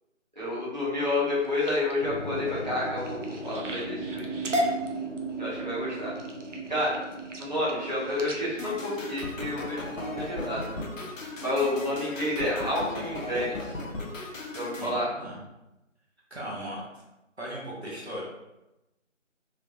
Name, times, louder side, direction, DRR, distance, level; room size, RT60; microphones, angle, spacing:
voice 1, 0.4-4.6 5.4-6.2 6.7-6.9 7.4-10.8 11.4-13.7 14.5-15.1, left 1 dB, 35° right, -9 dB, 1.0 m, -30 dB
sound 1, 1.3-10.0 10.5-10.9 11.3-11.7 12.1-12.2 12.5-12.6, equal, 70° right, 0.6 m, -37 dB
sound 2, 2.0-12.2, right 3 dB, 50° left, 0.5 m, -38 dB
sound 3, 8.6-14.9, left 2 dB, 85° left, 0.7 m, -37 dB
voice 2, 14.8-15.4 16.3-16.8 17.4-18.2, equal, 55° right, -6 dB, 1.1 m, -37 dB
3.3 x 3.2 x 2.5 m, 0.95 s
figure-of-eight pair, 180°, 38 cm